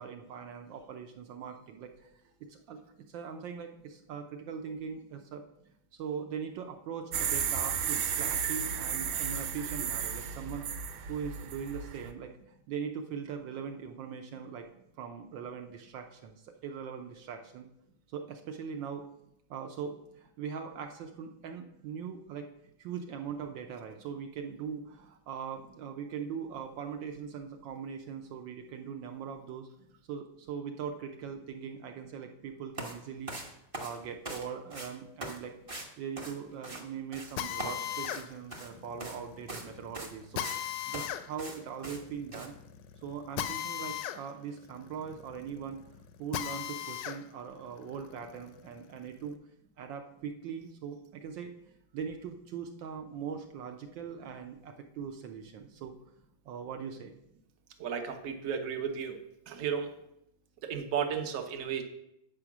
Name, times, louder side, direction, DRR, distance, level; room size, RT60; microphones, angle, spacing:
voice 1, 0.0-2.1 2.4-2.8 3.1-5.4 5.9-10.8 11.1-12.3 12.7-14.7 15.0-17.7 18.1-19.1 19.5-22.5 22.8-29.7 30.1-33.3 33.8-35.6 36.0-42.5 43.0-45.8 46.2-49.4 49.8-51.5 51.9-56.0 56.4-57.1, right 7 dB, 70° right, 4 dB, 1.3 m, -41 dB
sound 1, 7.1-12.1, right 7 dB, 90° right, 1.6 m, -33 dB
sound 2, 32.7-32.9 33.3-34.4 34.7-34.9 35.2-35.4 35.7-35.9 36.2-36.8 37.1-37.3 37.6-38.7 39.0-39.2 39.5-39.7 39.9-40.6 40.9-41.1 41.4-41.6 41.8-42.0 42.3-42.5, right 1 dB, 25° right, 0.7 m, -41 dB
Drill, 37.4-47.2 47.6-49.3, left 11 dB, 75° left, 1.1 m, -39 dB
voice 2, 57.8-59.2 59.5-59.9 60.6-61.8, right 7 dB, 55° right, 4 dB, 1.0 m, -33 dB
8.3 x 5.0 x 5.9 m, 0.80 s
omnidirectional pair, 2.3 m